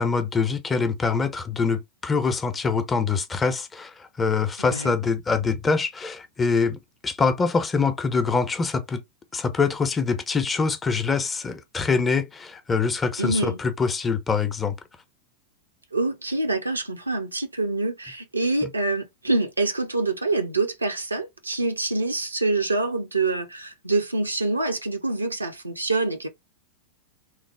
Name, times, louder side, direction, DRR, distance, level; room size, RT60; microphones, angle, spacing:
voice 1, 0.0-9.0 9.3-14.8 18.6-18.7, left 4 dB, 15° left, 0.5 m, -24 dB
voice 2, 4.6-4.9 13.2-13.6 15.9-26.3, right 2 dB, 80° right, 0.6 m, -26 dB
3.2 x 2.0 x 3.2 m
figure-of-eight pair, 90°, 0 cm